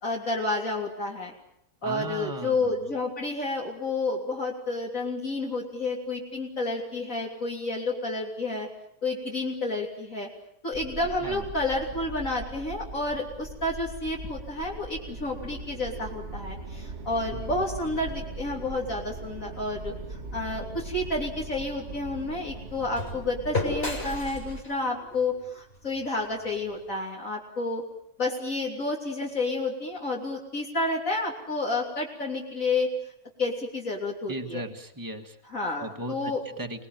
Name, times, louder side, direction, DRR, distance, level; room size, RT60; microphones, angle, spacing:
voice 1, 0.0-1.3 1.8-8.7 9.0-10.3 10.6-27.8 28.2-32.9 33.4-34.6 35.5-36.4, left 2 dB, 65° left, -2 dB, 3.7 m, -30 dB
voice 2, 1.8-2.7 11.2-11.5 17.3-17.6 34.3-35.4 35.8-36.9, right 1 dB, 15° right, 4 dB, 1.9 m, -37 dB
sound 1, 10.7-24.6, right 3 dB, 50° right, 1.8 m, -40 dB
sound 2, 20.7-26.9, left 2 dB, 40° left, 6.0 m, -37 dB
28.5 x 19.5 x 9.2 m, 0.72 s
omnidirectional pair, 1.5 m